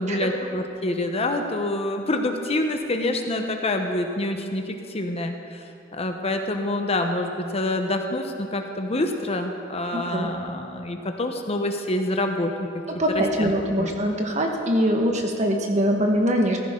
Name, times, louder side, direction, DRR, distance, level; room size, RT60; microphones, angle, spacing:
voice 1, 0.0-12.7 13.1-13.5 13.8-13.9, left 1 dB, 35° left, 5 dB, 0.9 m, -27 dB
voice 2, 9.9-10.3 12.9-16.6, equal, 40° right, 2 dB, 1.5 m, -23 dB
15.0 x 15.0 x 3.8 m, 2.5 s
head